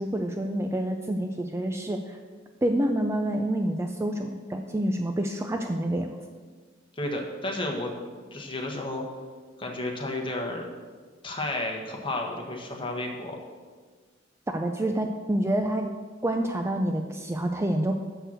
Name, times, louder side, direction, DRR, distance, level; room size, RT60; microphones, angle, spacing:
voice 1, 0.0-2.2 2.6-6.1 14.5-15.9 16.2-17.9, right 1 dB, 15° right, 4 dB, 0.4 m, -27 dB
voice 2, 7.0-7.9 8.3-9.0 9.6-10.7 11.2-13.4, left 1 dB, 25° left, 1 dB, 1.4 m, -32 dB
6.8 x 6.5 x 7.6 m, 1.5 s
head